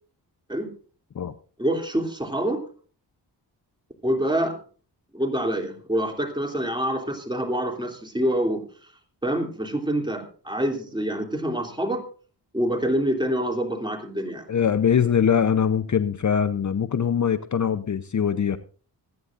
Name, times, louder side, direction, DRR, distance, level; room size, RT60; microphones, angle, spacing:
voice 1, 1.6-2.6 4.0-4.6 5.1-8.9 9.2-12.0 12.5-14.5, right 1 dB, 10° right, 2 dB, 3.0 m, -26 dB
voice 2, 14.5-18.6, left 7 dB, 45° left, 12 dB, 0.7 m, -22 dB
25.5 x 9.6 x 2.5 m, 0.40 s
cardioid pair, 65°, 41 cm